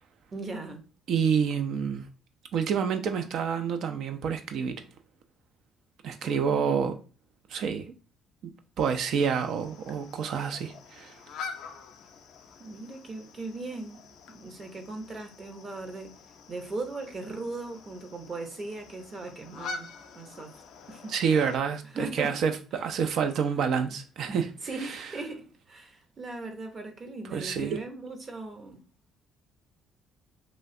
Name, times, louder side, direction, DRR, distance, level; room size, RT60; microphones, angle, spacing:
voice 1, 0.3-0.8 6.2-6.8 12.6-14.0 14.3-16.2 16.5-19.9 20.1-20.5 20.9-21.1 21.9-22.4 24.3-28.8, right 2 dB, 40° right, 0.7 m, -38 dB
voice 2, 1.1-2.1 2.5-4.8 6.0-6.9 7.5-7.9 8.4-11.2 21.1-24.5 27.2-27.8, right 6 dB, 70° right, 0.3 m, -28 dB
sound 1, 8.8-21.6, left 4 dB, 75° left, 0.4 m, -46 dB
3.0 x 2.4 x 2.6 m
supercardioid pair, 75°, 0 cm